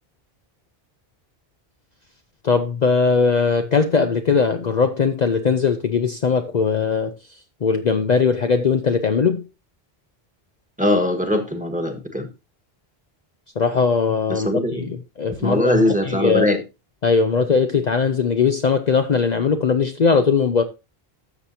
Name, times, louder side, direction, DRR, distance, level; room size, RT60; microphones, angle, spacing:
voice 1, 2.4-7.1 7.6-9.4 13.6-14.5 14.9-16.5 17.0-20.6, left 5 dB, 50° left, 0.7 m, -19 dB
voice 2, 10.8-12.3 14.3-15.0 15.4-16.6, left 1 dB, 10° right, 1.5 m, -21 dB
13.0 x 7.3 x 2.8 m
omnidirectional pair, 1.0 m